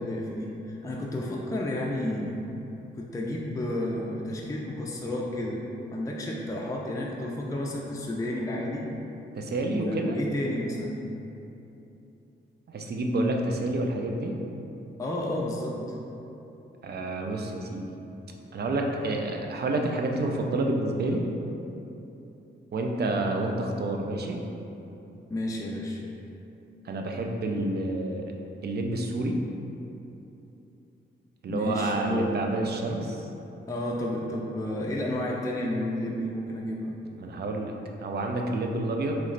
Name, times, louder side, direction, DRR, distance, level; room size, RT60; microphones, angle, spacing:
voice 1, 0.0-2.4 3.0-5.6 5.9-8.9 9.7-11.0 15.0-15.8 25.3-26.0 31.5-32.3 33.7-36.9, left 1 dB, 15° left, -3 dB, 0.4 m, -31 dB
voice 2, 9.4-10.2 12.7-14.3 16.8-17.9 18.5-21.3 22.7-24.4 26.8-28.3 28.6-29.4 31.4-33.3 37.2-37.7 38.0-39.2, right 2 dB, 55° right, 2 dB, 0.4 m, -29 dB
3.2 x 3.1 x 3.8 m, 2.9 s
wide cardioid pair, 105°, 20 cm